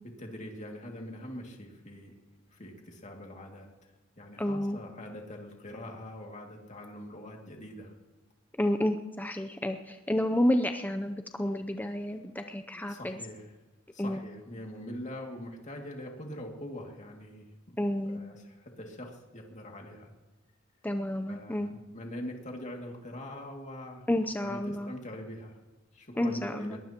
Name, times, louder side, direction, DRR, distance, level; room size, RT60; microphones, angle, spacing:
voice 1, 0.0-2.2 2.5-7.9 12.7-13.5 13.9-17.8 18.1-20.1 21.3-24.1 24.4-25.6 25.9-26.8, left 1 dB, 35° left, 1 dB, 2.3 m, -43 dB
voice 2, 4.4-4.8 8.6-13.2 14.0-14.2 17.8-18.2 20.8-21.7 24.1-24.9 26.2-26.8, left 1 dB, 10° left, 6 dB, 0.6 m, -30 dB
22.0 x 19.0 x 3.0 m, 1.2 s
head